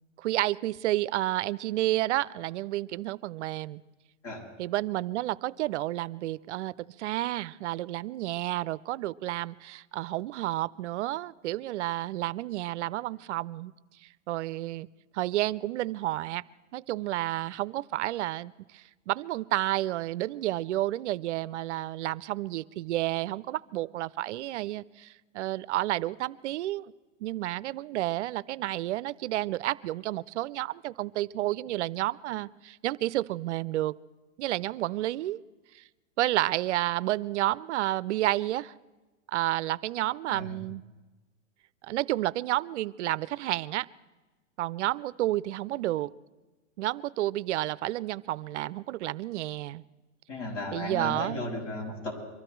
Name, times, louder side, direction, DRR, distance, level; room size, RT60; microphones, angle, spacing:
voice 1, 0.2-3.8 4.6-13.7 14.3-14.9 15.1-16.4 16.7-26.9 27.2-34.0 34.4-35.4 35.7-35.8 36.2-38.7 39.3-40.8 41.8-43.9 44.6-46.1 46.8-49.8 50.7-51.4, right 15 dB, 70° right, 19 dB, 0.5 m, -30 dB
voice 2, 50.3-52.1, left 2 dB, 80° left, -2 dB, 6.9 m, -35 dB
23.5 x 13.0 x 4.5 m, 1.2 s
hypercardioid pair, 135°, 37 cm